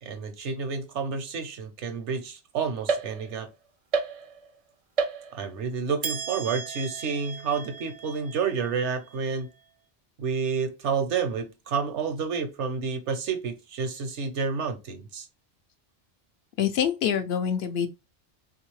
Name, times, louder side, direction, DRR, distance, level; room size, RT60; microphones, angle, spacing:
voice 1, 0.0-3.5 5.3-9.5 10.2-15.3, right 5 dB, 80° right, 1.1 m, -30 dB
sound 1, 2.9-3.5 3.9-4.6 5.0-5.6 6.0-9.5, right 5 dB, 55° right, 0.4 m, -33 dB
voice 2, 16.6-17.9, left 8 dB, 65° left, 0.8 m, -25 dB
3.5 x 2.7 x 3.0 m
omnidirectional pair, 1.2 m